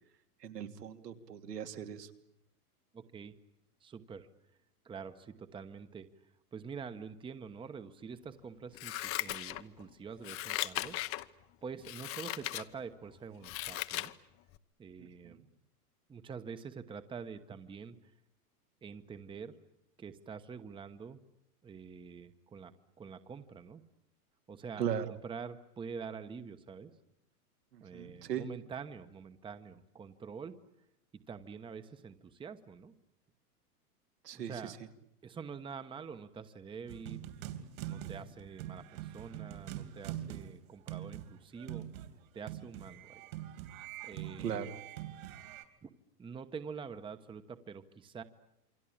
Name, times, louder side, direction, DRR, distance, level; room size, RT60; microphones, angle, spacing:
voice 1, 0.4-2.1 15.0-15.5 24.8-25.1 27.7-28.5 34.2-34.8 44.4-44.7, right 8 dB, 85° right, 6 dB, 3.0 m, -38 dB
voice 2, 2.9-3.3 3.8-4.3 4.8-6.1 6.5-11.0 11.6-14.1 14.8-15.4 16.1-18.1 18.8-19.5 20.0-21.2 21.6-22.7 23.0-23.8 24.5-26.9 27.8-30.6 31.3-32.9 34.3-34.7 35.2-37.2 37.9-41.9 42.3-43.3 44.0-44.7 45.8-45.9 46.2-48.2, right 6 dB, 10° right, 11 dB, 1.1 m, -46 dB
Scissors, 8.7-9.8 10.2-11.3 11.8-12.6 13.1-14.1 14.5-14.6, left 16 dB, 30° left, 1.0 m, -38 dB
sound 1, 36.9-45.6, right 12 dB, 60° right, 3.2 m, -44 dB
28.0 x 24.0 x 8.7 m, 0.80 s
hypercardioid pair, 135°, 47 cm